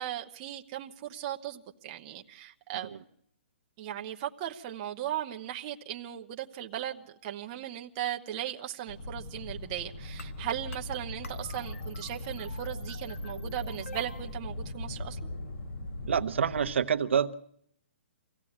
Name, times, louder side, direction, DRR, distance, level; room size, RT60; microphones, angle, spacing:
voice 1, 0.0-3.0 3.8-15.3, right 11 dB, 20° right, 0.9 m, -37 dB
sound 1, 8.9-16.7, left 1 dB, 55° left, 6.0 m, -41 dB
sound 2, 10.1-16.2, left 1 dB, 85° left, 2.2 m, -42 dB
voice 2, 16.1-17.3, right 7 dB, 65° right, 1.0 m, -27 dB
24.5 x 16.0 x 8.7 m
hypercardioid pair, 175°, 7 cm